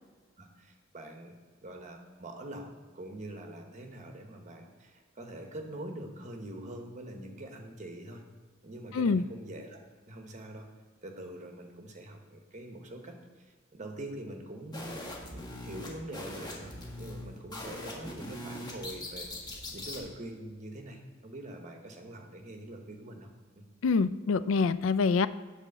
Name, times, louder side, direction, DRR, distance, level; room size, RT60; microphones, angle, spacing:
voice 1, 0.4-1.4 1.6-2.7 2.9-8.2 8.6-9.8 10.1-10.7 11.0-15.0 15.3-23.7, right 1 dB, 35° right, 3 dB, 1.1 m, -44 dB
sound 1, 14.7-20.0, left 1 dB, 20° left, 1.5 m, -41 dB
voice 2, 23.8-25.3, left 4 dB, 70° left, 14 dB, 0.4 m, -25 dB
8.2 x 4.3 x 6.7 m, 1.4 s
head